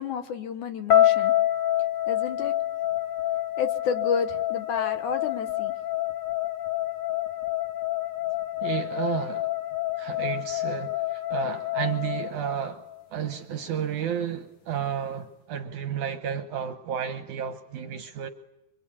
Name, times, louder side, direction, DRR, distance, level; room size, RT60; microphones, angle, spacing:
voice 1, 0.0-1.3 2.1-2.5 3.6-5.7, left 6 dB, 65° left, 2.1 m, -30 dB
sound 1, 0.9-13.0, left 13 dB, 50° left, 1.8 m, -27 dB
voice 2, 8.6-9.5 10.0-12.8 13.1-18.3, right 9 dB, 70° right, 1.9 m, -32 dB
25.5 x 25.0 x 8.7 m
omnidirectional pair, 4.7 m